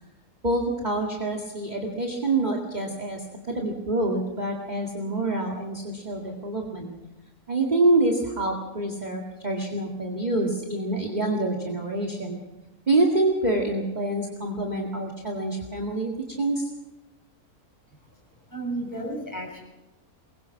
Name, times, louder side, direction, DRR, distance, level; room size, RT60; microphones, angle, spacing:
voice 1, 0.4-6.9 7.5-12.4 12.9-16.7, right 2 dB, 30° right, 2 dB, 2.2 m, -26 dB
voice 2, 18.5-19.6, right 2 dB, 10° left, 0 dB, 7.3 m, -32 dB
22.5 x 21.5 x 5.9 m, 1.0 s
omnidirectional pair, 1.5 m